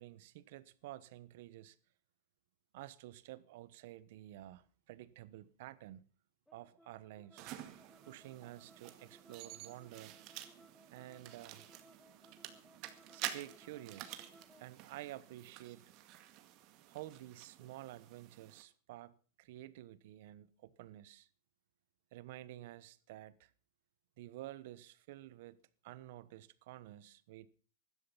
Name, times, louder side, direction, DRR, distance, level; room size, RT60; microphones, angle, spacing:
voice 1, 0.0-1.8 2.7-6.1 6.5-7.5 8.1-10.2 10.9-11.6 13.1-14.3 14.6-15.8 16.9-21.3 22.1-23.5 24.2-25.6 25.8-27.5, right 15 dB, 65° right, 1.1 m, -51 dB
sound 1, 6.5-14.7, equal, 5° left, 1.8 m, -64 dB
sound 2, 7.4-18.6, right 13 dB, 50° right, 2.0 m, -50 dB
16.0 x 12.5 x 5.7 m
hypercardioid pair, 120°, 0 cm